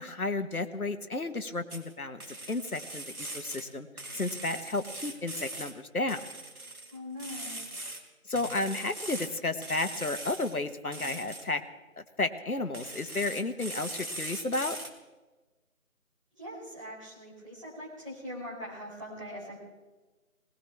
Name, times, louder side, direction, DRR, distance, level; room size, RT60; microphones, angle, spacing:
voice 1, 0.0-3.9 4.1-6.2 8.3-11.6 12.0-14.8, left 2 dB, 85° left, 10 dB, 1.4 m, -32 dB
sound 1, 1.7-1.9 2.2-3.7 4.0-5.7 6.1-8.0 8.4-9.3 9.6-10.6 10.9-11.5 12.7-14.9, right 2 dB, 85° right, 2.4 m, -41 dB
voice 2, 6.9-7.7 16.3-19.6, equal, 20° right, -9 dB, 4.3 m, -42 dB
19.5 x 19.5 x 3.5 m, 1.2 s
figure-of-eight pair, 175°, 43 cm